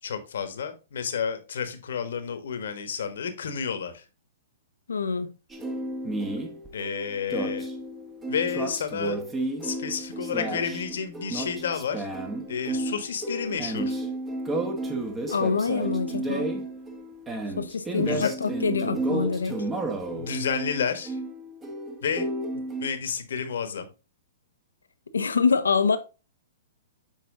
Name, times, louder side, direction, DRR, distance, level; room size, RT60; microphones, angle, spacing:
voice 1, 0.0-4.0 6.7-7.7 8.3-9.2 9.6-12.1 12.5-14.0 18.1-18.3 20.1-21.2 22.0-22.2 22.8-23.9, left 7 dB, 70° left, 1.3 m, -30 dB
voice 2, 4.9-5.3 15.3-16.5 17.6-19.6 25.1-26.0, left 5 dB, 90° left, 0.8 m, -25 dB
sound 1, 5.5-22.9, right 2 dB, 15° right, 1.3 m, -32 dB
7.5 x 4.3 x 3.7 m
hypercardioid pair, 125°, 0 cm